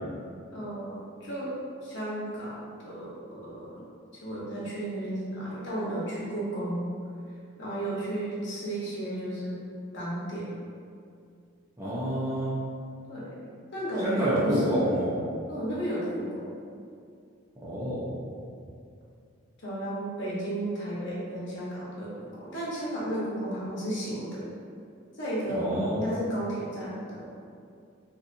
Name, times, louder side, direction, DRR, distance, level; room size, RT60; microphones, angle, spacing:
voice 1, 0.5-1.5 1.8-3.8 4.1-6.9 7.6-9.6 9.9-10.5 13.1-13.3 13.7-14.8 15.5-16.5 19.6-24.4 25.1-27.3, right 1 dB, 55° left, -7 dB, 1.0 m, -33 dB
voice 2, 11.8-12.6 14.0-15.2 17.6-18.1 25.5-26.0, right 1 dB, 15° right, -9 dB, 0.6 m, -28 dB
3.8 x 2.7 x 2.5 m, 2.4 s
head